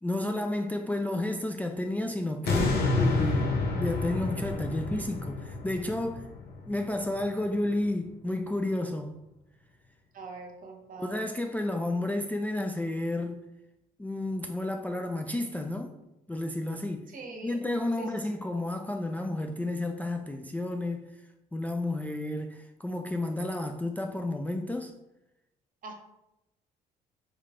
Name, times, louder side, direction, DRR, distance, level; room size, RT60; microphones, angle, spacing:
voice 1, 0.0-6.3 6.7-9.2 11.0-13.5 14.0-15.9 16.3-17.1 17.4-21.1 21.5-24.9, left 1 dB, 10° left, 0.3 m, -31 dB
sound 1, 2.4-7.6 8.0-8.1, left 3 dB, 60° left, 0.9 m, -29 dB
voice 2, 10.1-11.2 17.1-17.6 18.0-18.2 25.8-25.9, right 3 dB, 45° right, 1.0 m, -43 dB
3.3 x 3.2 x 3.6 m
hypercardioid pair, 50°, 19 cm